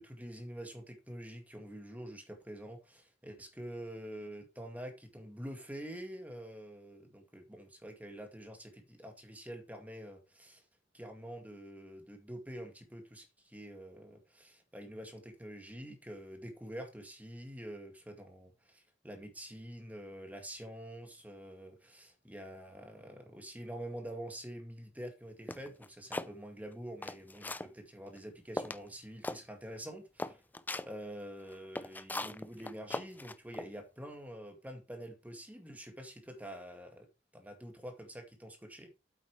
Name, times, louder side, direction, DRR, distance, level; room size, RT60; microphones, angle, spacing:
voice 1, 0.0-10.6 10.9-30.4 30.8-37.1 37.3-38.9, equal, 10° right, 2.0 m, -46 dB
sound 1, 25.5-26.3 26.8-27.7 28.2-28.3 28.6-28.9 29.2-29.4 29.8-29.9 30.2-30.9 31.5-33.7, left 2 dB, 10° left, 0.5 m, -39 dB
8.5 x 8.3 x 3.2 m
head